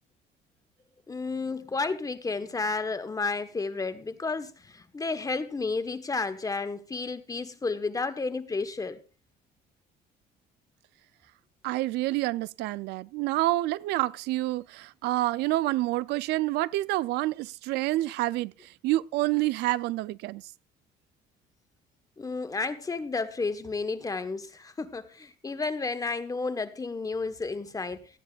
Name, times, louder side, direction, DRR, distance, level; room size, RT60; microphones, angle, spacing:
voice 1, 1.1-9.0 22.2-28.1, left 3 dB, 20° left, 1.3 m, -32 dB
voice 2, 11.6-20.4, right 17 dB, 90° right, 0.4 m, -28 dB
17.0 x 12.0 x 2.4 m
cardioid pair, 110°, 17 cm